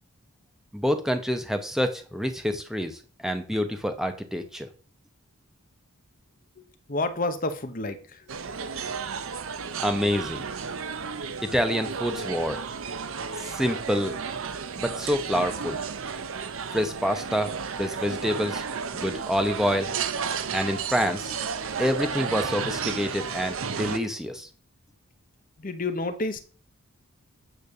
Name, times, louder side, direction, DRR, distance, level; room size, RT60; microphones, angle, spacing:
voice 1, 0.7-4.7 9.8-10.4 11.5-12.6 13.5-14.2 14.8-15.8 16.7-17.5 17.8-18.6 18.9-19.9 20.5-21.3 21.8-24.5, equal, ahead, 0.8 m, -27 dB
voice 2, 6.6-8.3 25.6-26.4, left 2 dB, 40° left, 0.9 m, -30 dB
sound 1, 8.3-24.0, right 6 dB, 65° right, 0.7 m, -33 dB
9.1 x 3.4 x 6.6 m
head